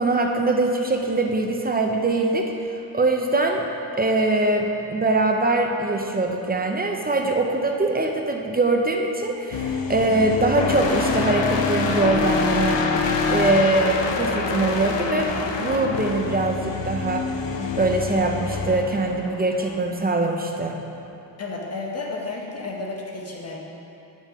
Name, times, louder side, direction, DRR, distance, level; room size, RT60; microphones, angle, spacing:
voice 1, 0.0-3.6 4.0-12.8 13.3-15.3 15.6-17.2 17.8-20.8, right 2 dB, 20° right, 2 dB, 0.5 m, -22 dB
sound 1, 9.5-19.8, left 4 dB, 80° left, 0.7 m, -26 dB
voice 2, 21.4-23.6, left 3 dB, 35° left, -1 dB, 1.0 m, -32 dB
9.0 x 5.6 x 4.9 m, 2.8 s
wide cardioid pair, 175°, 42 cm